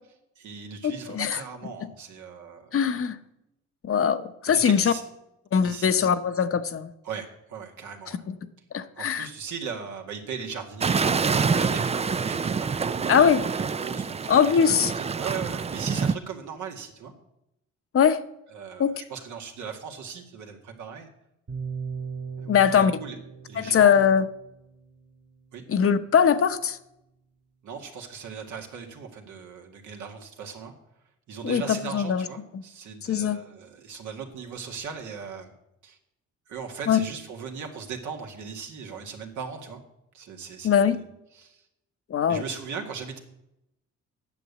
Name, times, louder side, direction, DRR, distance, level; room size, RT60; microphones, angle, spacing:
voice 1, 0.4-2.7 4.5-5.0 5.6-6.1 7.0-8.2 9.0-17.1 18.5-21.1 22.4-23.2 23.5-24.1 25.5-25.6 27.6-30.7 31.3-35.5 35.8-36.0 36.5-39.8 40.1-41.0 41.3-41.6 42.3-43.2, right 6 dB, 75° right, 2 dB, 2.0 m, -38 dB
voice 2, 1.1-1.4 2.7-3.2 3.8-4.9 5.5-6.9 8.3-8.4 8.7-9.3 13.1-13.4 14.3-14.9 17.9-18.2 18.8-18.9 22.5-22.9 23.6-24.3 25.7-26.8 31.4-31.6 31.9-32.2 32.5-32.6 33.0-33.4 36.9-37.0 40.6-41.0 42.1-42.4, left 7 dB, 45° left, 9 dB, 0.9 m, -21 dB
sound 1, 10.8-16.1, right 5 dB, 20° right, 0.4 m, -26 dB
sound 2, 21.5-25.5, right 5 dB, 55° right, 2.6 m, -38 dB
9.4 x 6.9 x 8.2 m, 0.85 s
cardioid pair, 90°, 30 cm